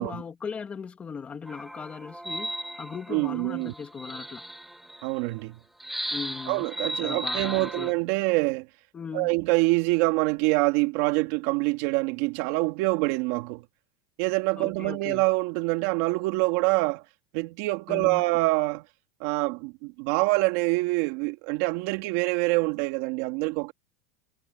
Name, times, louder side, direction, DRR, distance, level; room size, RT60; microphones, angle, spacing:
voice 1, 0.0-4.4 6.1-6.7 7.0-7.9 8.9-9.3 14.6-15.2 17.9-18.2, left 6 dB, 15° left, 2.8 m, -38 dB
sound 1, 1.5-5.2 5.8-7.9, right 1 dB, ahead, 3.4 m, -36 dB
voice 2, 3.1-3.7 5.0-5.6 6.5-8.7 9.1-13.6 14.2-17.0 17.3-18.8 19.2-23.7, right 23 dB, 55° right, 2.8 m, -25 dB
supercardioid pair, 165°, 8 cm